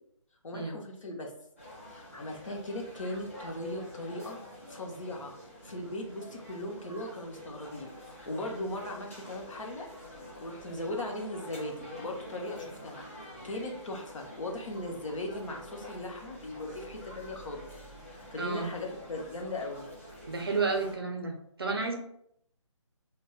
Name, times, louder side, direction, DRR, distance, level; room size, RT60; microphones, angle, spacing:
voice 1, 0.4-1.3 1.9-4.4 4.7-5.3 5.6-9.9 10.4-13.0 13.4-17.7 18.1-19.8, left 1 dB, 70° left, 1 dB, 0.7 m, -38 dB
sound 1, 1.6-21.0, left 1 dB, 25° left, 0.5 m, -47 dB
voice 2, 18.4-18.7 20.3-22.0, right 4 dB, 50° right, 3 dB, 0.5 m, -31 dB
2.1 x 2.0 x 3.8 m, 0.71 s
hypercardioid pair, 180°, 17 cm